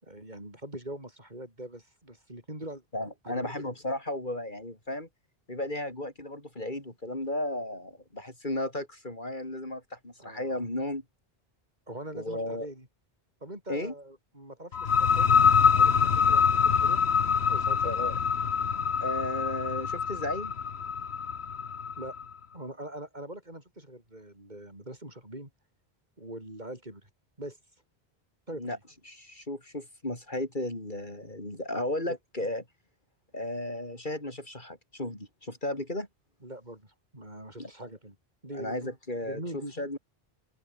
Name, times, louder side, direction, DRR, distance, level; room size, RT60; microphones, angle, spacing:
voice 1, 0.0-2.8 3.2-3.7 10.2-10.6 11.9-12.9 13.4-15.4 15.7-17.0 17.5-18.1 22.0-22.2 22.5-25.5 26.2-27.1 27.4-27.6 28.5-28.8 32.1-32.2 36.4-38.2 38.4-38.9 39.2-39.7, right 1 dB, 45° right, 6.9 m, -42 dB
voice 2, 2.9-5.1 5.5-11.0 12.1-12.7 13.7-13.9 17.8-18.2 19.0-20.5 28.5-28.8 29.1-32.6 33.3-36.1 37.6-37.7 38.5-40.0, left 1 dB, 50° left, 6.1 m, -34 dB
sound 1, 14.7-22.2, left 6 dB, 85° left, 1.5 m, -25 dB
omnidirectional pair, 1.0 m